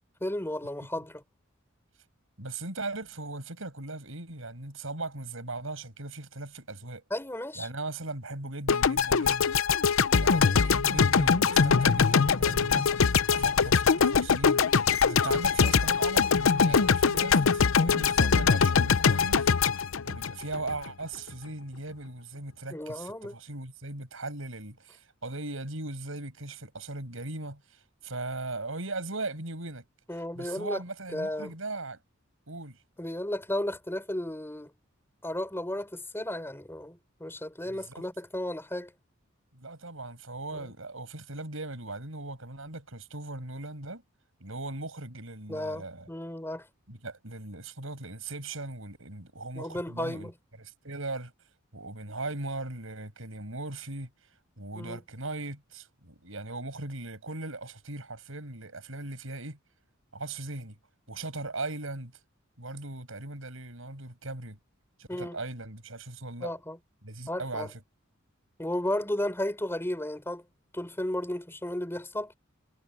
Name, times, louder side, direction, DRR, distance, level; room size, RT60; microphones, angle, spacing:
voice 1, 0.2-1.2 7.1-7.7 22.7-23.3 30.1-30.8 31.1-31.5 33.0-34.7 35.2-38.9 40.5-40.7 45.5-46.7 49.5-50.3 54.7-55.0 65.1-65.4 66.4-66.8 67.3-67.7 68.6-70.4 70.7-72.3, left 1 dB, 10° left, 4.1 m, -34 dB
voice 2, 2.4-7.0 7.5-9.5 10.2-19.5 20.0-29.8 30.3-32.0 32.5-32.8 37.7-37.8 39.5-44.0 44.4-46.1 46.9-50.3 50.6-51.3 51.7-54.1 54.6-59.6 60.1-60.7 61.1-62.1 62.6-64.6 65.0-66.5 67.0-67.8, right 2 dB, 75° right, 6.8 m, -38 dB
sound 1, 8.7-20.9, left 5 dB, 75° left, 0.7 m, -23 dB
head